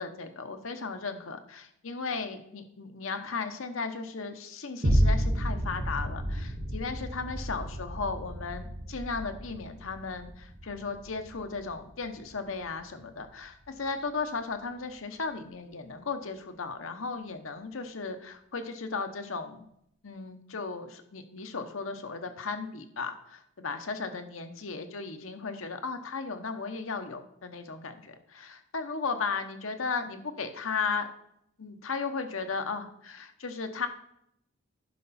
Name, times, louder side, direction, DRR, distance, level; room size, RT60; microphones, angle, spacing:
voice 1, 0.0-19.6 20.0-31.1 31.6-33.9, left 4 dB, 75° left, 7 dB, 0.9 m, -36 dB
sound 1, 4.8-13.4 13.9-14.0, equal, 60° right, 1.9 m, -31 dB
11.0 x 5.6 x 4.2 m, 0.72 s
head